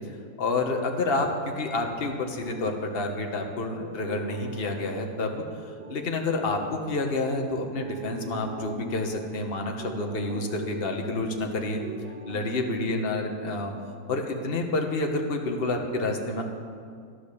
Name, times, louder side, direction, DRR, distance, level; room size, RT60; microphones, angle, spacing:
voice 1, 0.1-5.6 5.9-11.8 12.3-13.7 14.1-16.5, left 2 dB, 35° left, 3 dB, 1.4 m, -29 dB
sound 1, 2.4-14.1, right 1 dB, 65° right, 1.7 m, -42 dB
13.0 x 12.5 x 7.0 m, 2.2 s
omnidirectional pair, 2.1 m